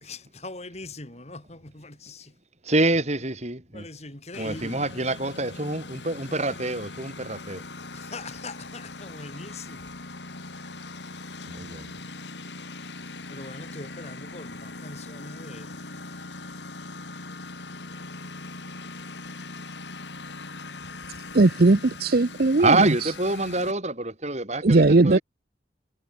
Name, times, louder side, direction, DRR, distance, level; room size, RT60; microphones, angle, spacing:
voice 1, 0.0-2.3 3.7-4.8 7.9-9.9 13.3-15.7, left 2 dB, 40° left, 3.5 m, -41 dB
voice 2, 2.6-3.9 4.4-7.6 11.5-11.9 22.6-25.2, right 2 dB, 40° right, 5.4 m, -26 dB
Engine, 4.3-23.7, left 3 dB, 80° left, 4.2 m, -40 dB
voice 3, 21.3-22.9 24.6-25.2, right 2 dB, 60° right, 0.7 m, -18 dB
head